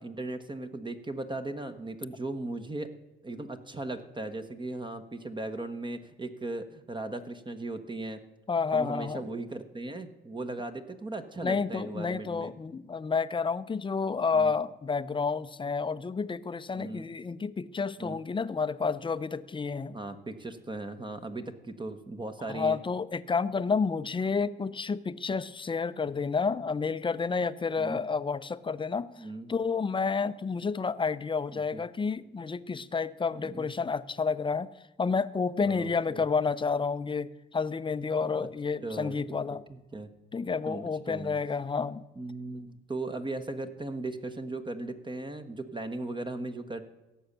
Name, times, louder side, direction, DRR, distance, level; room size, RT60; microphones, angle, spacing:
voice 1, 0.0-2.9 3.2-8.2 8.7-12.5 14.3-14.5 16.7-17.1 18.0-18.2 19.9-22.8 27.8-28.0 29.2-29.5 31.5-31.8 33.5-33.7 35.6-36.2 38.4-38.5 38.8-40.1 40.7-41.4 42.2-46.8, right 2 dB, 25° right, 7 dB, 1.2 m, -37 dB
voice 2, 8.5-9.2 11.4-20.0 22.5-34.7 35.0-39.6 40.3-42.0, left 5 dB, 25° left, 14 dB, 0.6 m, -30 dB
17.0 x 7.2 x 6.7 m, 1.0 s
cardioid pair, 90°, 20 cm